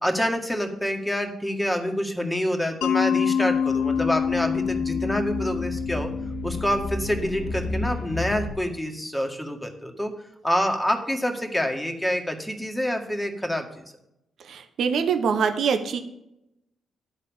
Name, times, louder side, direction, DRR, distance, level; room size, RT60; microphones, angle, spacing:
voice 1, 0.0-6.1 6.4-10.1 10.4-13.8, equal, 5° left, 3 dB, 1.9 m, -27 dB
Mallet percussion, 2.8-7.6, left 7 dB, 75° left, 0.4 m, -26 dB
sound 1, 3.5-8.5, left 2 dB, 55° left, 0.9 m, -33 dB
voice 2, 14.4-16.0, right 6 dB, 65° right, 8 dB, 0.8 m, -24 dB
11.0 x 4.1 x 7.1 m, 0.83 s
hypercardioid pair, 45°, 0 cm